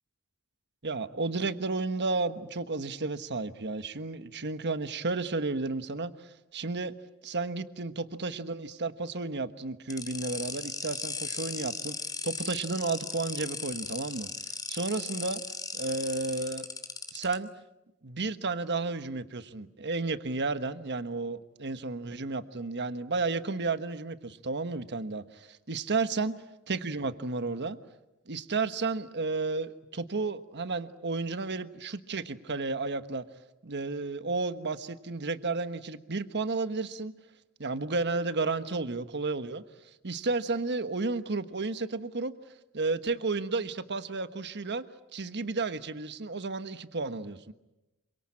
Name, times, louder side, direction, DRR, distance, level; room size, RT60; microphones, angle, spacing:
voice 1, 0.8-6.9 7.2-11.9 12.2-15.4 15.7-16.7 17.1-17.5 18.0-26.4 26.7-27.8 28.3-33.2 33.6-37.1 37.6-42.3 42.7-44.9 45.1-47.5, right 3 dB, 50° right, 11 dB, 1.3 m, -32 dB
sound 1, 9.9-17.3, left 5 dB, 20° left, 2.6 m, -37 dB
27.5 x 24.5 x 8.7 m, 0.97 s
head